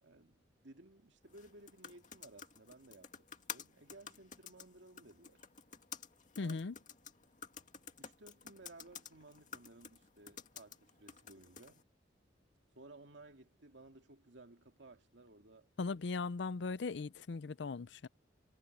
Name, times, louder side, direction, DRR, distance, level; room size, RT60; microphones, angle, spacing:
voice 1, 0.0-5.5 6.4-6.6 8.0-11.9 12.7-15.7, right 2 dB, 70° right, 2.4 m, -58 dB
sound 1, 1.3-11.8, left 7 dB, 45° left, 2.1 m, -52 dB
voice 2, 6.4-6.8 15.8-18.1, left 4 dB, 65° left, 0.5 m, -38 dB
head